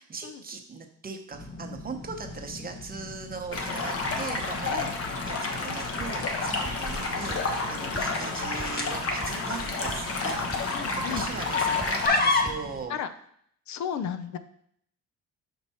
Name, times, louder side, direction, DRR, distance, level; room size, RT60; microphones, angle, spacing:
voice 1, 0.0-4.9 5.3-13.0, right 5 dB, 30° right, 4 dB, 0.9 m, -39 dB
sound 1, 1.3-12.8, left 3 dB, 30° left, 1.0 m, -34 dB
Stream, 3.5-12.1, left 3 dB, 50° left, 1.1 m, -30 dB
sound 2, 5.7-7.0 7.3-8.3 8.6-9.0 9.2-9.6 9.9-10.3 10.5-10.9 11.2-12.7, right 2 dB, 10° right, 0.4 m, -42 dB
voice 2, 10.4-11.3 12.9-13.1 13.7-14.4, left 8 dB, 65° left, 11 dB, 0.6 m, -35 dB
5.2 x 4.6 x 4.2 m, 0.68 s
cardioid pair, 90°, 30 cm